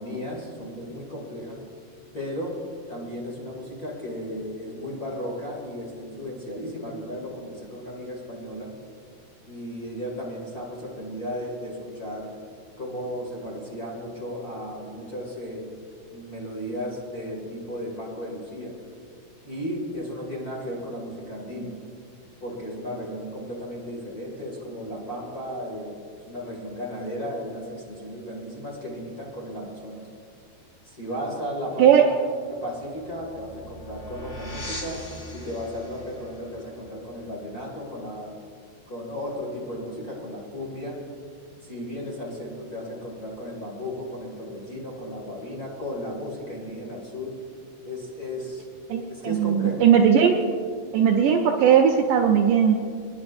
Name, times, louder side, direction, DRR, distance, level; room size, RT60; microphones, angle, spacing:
voice 1, 0.0-1.6 2.1-2.6 2.9-8.7 9.5-12.3 12.8-15.7 16.1-18.8 19.4-21.7 22.4-25.9 26.3-30.0 30.8-38.3 38.9-41.0 41.6-47.3 47.8-48.6 49.1-49.9, equal, 30° left, -3 dB, 2.1 m, -35 dB
sound 1, 32.8-38.1, left 1 dB, 50° left, 5.0 m, -41 dB
voice 2, 48.9-50.4 50.9-52.8, right 8 dB, 75° right, 2 dB, 2.0 m, -18 dB
29.0 x 10.5 x 2.6 m, 2.1 s
omnidirectional pair, 4.3 m